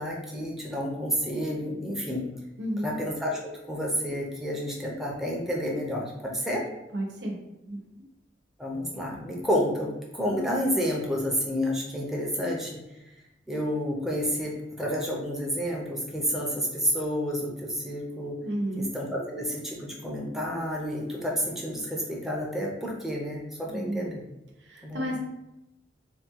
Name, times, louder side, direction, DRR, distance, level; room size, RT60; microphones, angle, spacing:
voice 1, 0.0-2.2 2.8-6.6 8.6-12.7 13.5-18.4 18.8-24.2 24.8-25.1, equal, ahead, -3 dB, 0.7 m, -30 dB
voice 2, 2.6-3.0 6.9-7.4 7.7-7.8 18.4-18.9 23.7-24.1 24.7-25.2, equal, 85° right, 0 dB, 0.9 m, -31 dB
3.5 x 2.3 x 4.5 m, 0.91 s
head